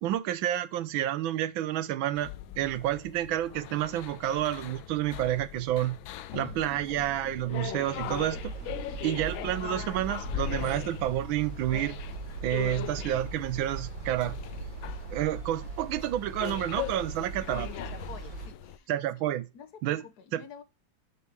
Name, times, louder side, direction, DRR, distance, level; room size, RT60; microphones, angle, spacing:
voice 1, 0.0-2.3 2.6-6.0 6.3-8.5 9.0-12.0 12.4-14.4 15.1-17.7 18.9-19.5 19.8-20.0 20.3-20.4, right 13 dB, 85° right, 1.5 m, -29 dB
sound 1, 2.2-18.8, left 12 dB, 90° left, 1.4 m, -40 dB
sound 2, 6.3-10.7, right 1 dB, 5° left, 2.2 m, -50 dB
sound 3, 8.0-18.5, right 4 dB, 70° right, 3.5 m, -40 dB
voice 2, 17.4-18.9 19.5-20.6, left 7 dB, 60° left, 1.3 m, -49 dB
6.4 x 5.5 x 4.6 m
omnidirectional pair, 2.1 m